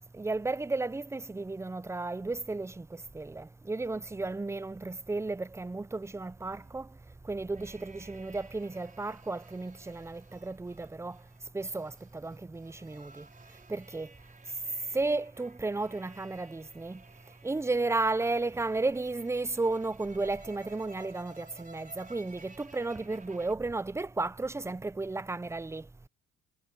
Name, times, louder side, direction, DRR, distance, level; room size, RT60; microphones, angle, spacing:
voice 1, 0.2-6.9 7.3-11.2 11.5-13.3 13.7-14.1 14.9-17.0 17.4-25.8, right 3 dB, 10° right, 0.5 m, -33 dB
sound 1, 5.8-23.5, right 3 dB, 25° right, 5.5 m, -56 dB
cardioid pair, 90°, 30 cm